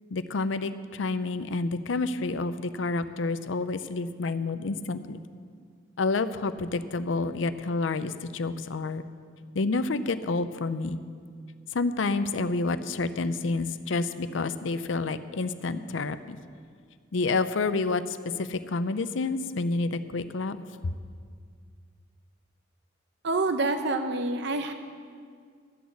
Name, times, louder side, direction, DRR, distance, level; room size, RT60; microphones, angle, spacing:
voice 1, 0.1-5.2 6.0-9.0 9.5-11.0 11.7-16.4 17.1-20.6 20.8-20.9, left 3 dB, 80° left, 12 dB, 0.6 m, -29 dB
voice 2, 23.2-24.7, right 2 dB, 65° right, 7 dB, 0.7 m, -27 dB
13.5 x 6.3 x 8.3 m, 2.1 s
head